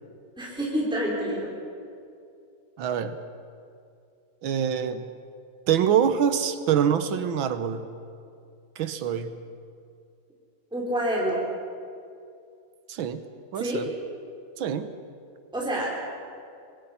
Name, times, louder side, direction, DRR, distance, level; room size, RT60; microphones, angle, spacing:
voice 1, 0.4-1.5 10.7-11.4 13.5-13.8 15.5-15.9, equal, ahead, -4 dB, 3.9 m, -27 dB
voice 2, 2.8-3.2 4.4-5.1 5.7-7.9 8.8-9.4 12.9-13.2 13.5-13.9 14.6-14.9, right 8 dB, 80° right, 10 dB, 1.7 m, -25 dB
25.5 x 20.5 x 5.8 m, 2.4 s
omnidirectional pair, 2.2 m